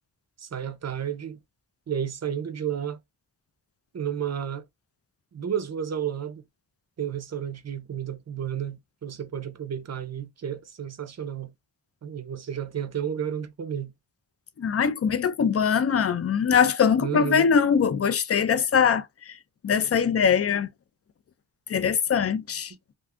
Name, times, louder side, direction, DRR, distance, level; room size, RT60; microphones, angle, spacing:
voice 1, 0.4-1.4 1.9-3.0 3.9-4.6 5.3-6.4 7.0-11.5 12.0-13.9 17.0-17.5, right 8 dB, 40° right, 0.6 m, -32 dB
voice 2, 14.6-19.4 19.6-20.7 21.7-22.7, left 7 dB, 35° left, 0.4 m, -22 dB
2.5 x 2.3 x 3.5 m
wide cardioid pair, 85°, 41 cm